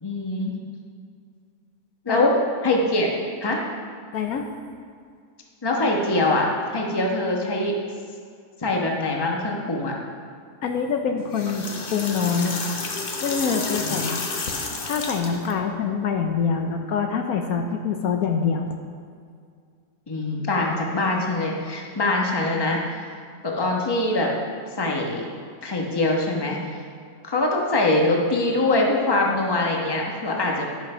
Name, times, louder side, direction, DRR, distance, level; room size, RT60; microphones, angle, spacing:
voice 1, 0.0-0.5 2.0-2.3 2.6-3.1 3.4-3.6 5.6-7.8 8.6-9.9 13.8-14.2 20.1-23.1 23.4-24.3 24.8-25.3 25.6-26.6 27.2-30.6, left 2 dB, 20° left, -1 dB, 1.0 m, -23 dB
voice 2, 4.1-4.5 10.6-12.6 13.2-14.2 14.8-18.7, left 6 dB, 70° left, 4 dB, 1.1 m, -25 dB
sound 1, 11.2-15.5, left 3 dB, 45° left, 0.9 m, -30 dB
10.5 x 6.0 x 5.5 m, 2.2 s
omnidirectional pair, 1.6 m